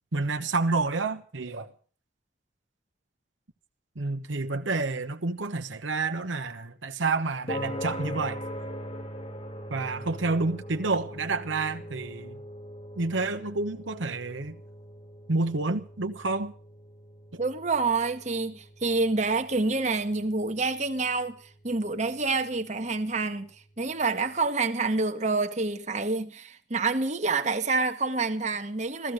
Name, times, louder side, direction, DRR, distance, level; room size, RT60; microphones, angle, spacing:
voice 1, 0.1-1.7 3.9-8.4 9.7-12.4 13.0-14.6 15.3-16.5, right 3 dB, 85° right, 1.1 m, -29 dB
sound 1, 7.5-24.0, equal, 30° left, 1.5 m, -42 dB
voice 2, 17.4-21.4 21.6-23.5 23.8-29.1, right 3 dB, 40° right, 1.2 m, -27 dB
15.0 x 14.5 x 6.4 m
head